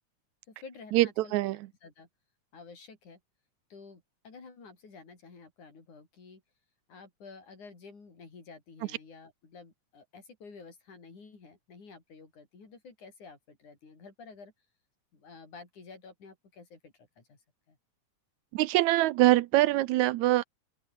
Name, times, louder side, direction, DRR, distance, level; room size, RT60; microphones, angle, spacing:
voice 1, 0.5-2.1 2.5-3.2 3.7-6.4 6.9-14.5 15.1-17.4 17.7-17.8, left 4 dB, 80° left, 7.1 m, -51 dB
voice 2, 18.5-20.4, right 17 dB, 80° right, 2.0 m, -23 dB
open air
omnidirectional pair, 3.4 m